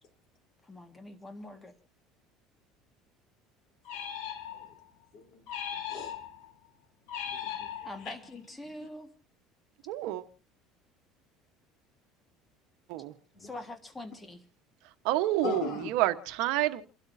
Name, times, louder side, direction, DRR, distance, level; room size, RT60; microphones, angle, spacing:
voice 1, 0.6-1.8 3.9-4.2 7.8-9.1 13.4-14.4, left 2 dB, 10° left, 1.6 m, -44 dB
sound 1, 3.9-4.9 5.5-6.5 7.1-8.3, left 9 dB, 80° left, 3.7 m, -38 dB
voice 2, 5.1-5.4 5.7-6.1 7.4-8.1 13.3-13.5 15.4-16.0, left 5 dB, 55° left, 3.4 m, -38 dB
voice 3, 9.9-10.2 12.9-13.1 15.0-16.8, right 15 dB, 75° right, 1.1 m, -28 dB
29.5 x 12.5 x 2.7 m
cardioid pair, 140°, 0 cm